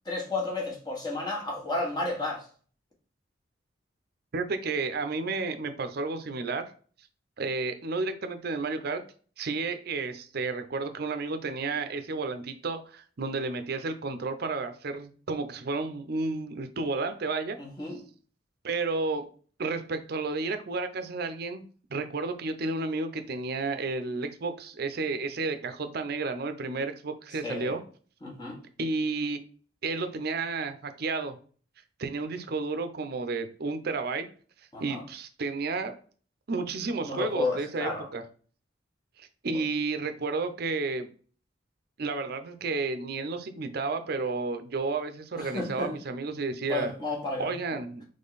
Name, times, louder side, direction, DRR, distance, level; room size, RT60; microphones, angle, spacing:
voice 1, 0.0-2.5 17.6-18.0 27.4-27.8 28.2-28.6 34.7-35.0 37.0-38.1 45.4-45.9 46.7-47.8, left 2 dB, 20° left, 1.3 m, -32 dB
voice 2, 4.3-6.7 7.4-9.0 9.4-17.6 18.6-19.3 19.6-21.6 21.9-27.8 28.8-29.4 29.8-31.4 32.0-34.3 34.8-36.0 36.5-38.2 39.2-41.1 42.0-46.9 47.4-48.0, right 3 dB, 55° right, 0.5 m, -32 dB
3.8 x 3.2 x 4.0 m
head